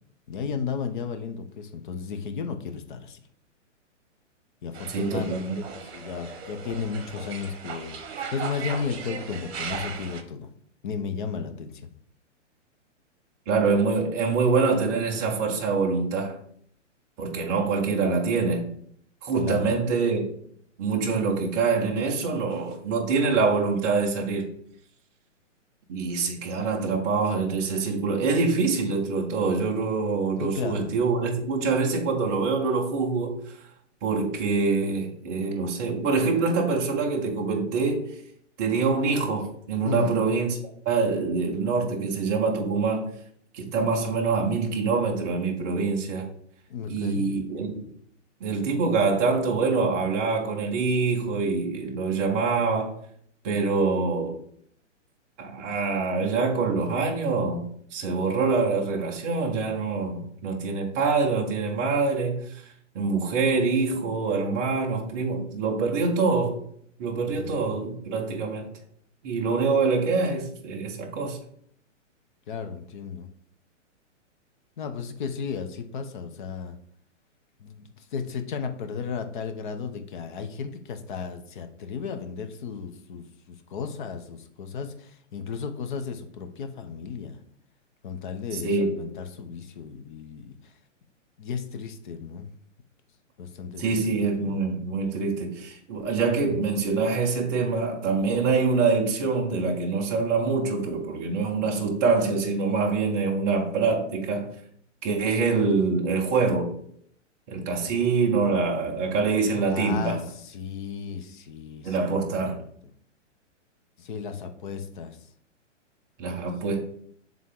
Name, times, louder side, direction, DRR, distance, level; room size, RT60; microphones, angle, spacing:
voice 1, 0.3-3.2 4.6-10.5 10.8-11.9 19.4-19.7 30.4-30.9 39.8-40.2 46.7-47.3 67.3-67.7 72.5-73.3 74.8-76.8 77.6-87.4 88.0-90.6 91.4-92.5 93.4-94.1 94.4-94.6 96.4-96.7 107.8-108.0 109.7-112.7 114.0-115.2, left 6 dB, 40° left, 0.8 m, -34 dB
sound 1, 4.7-10.2, right 6 dB, 55° right, 1.1 m, -37 dB
voice 2, 4.9-5.6 13.5-16.4 17.2-18.7 19.2-20.2 20.8-24.4 25.9-33.5 34.0-38.2 38.6-40.6 40.9-43.1 43.5-46.3 46.9-47.9 48.4-52.9 53.4-54.4 55.4-57.6 57.9-62.5 62.9-66.6 67.0-68.7 69.2-71.4 88.5-89.0 93.8-104.5 105.0-106.7 107.5-110.2 111.8-112.6 116.2-116.8, right 4 dB, 15° right, 0.5 m, -25 dB
7.6 x 3.7 x 3.7 m
hypercardioid pair, 155°, 38 cm